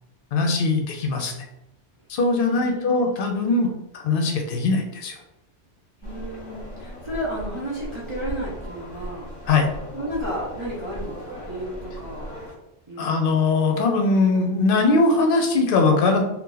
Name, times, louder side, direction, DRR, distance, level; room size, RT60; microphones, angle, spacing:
voice 1, 0.3-1.3 2.1-5.2 9.5-9.7 13.0-16.2, left 3 dB, 55° left, 3 dB, 0.7 m, -21 dB
voice 2, 2.5-3.1 6.0-9.3 9.9-12.3 12.9-13.5, equal, 30° right, -6 dB, 0.6 m, -33 dB
sound 1, 6.0-12.5, equal, 30° left, 0.9 m, -37 dB
2.7 x 2.3 x 3.8 m, 0.88 s
omnidirectional pair, 1.2 m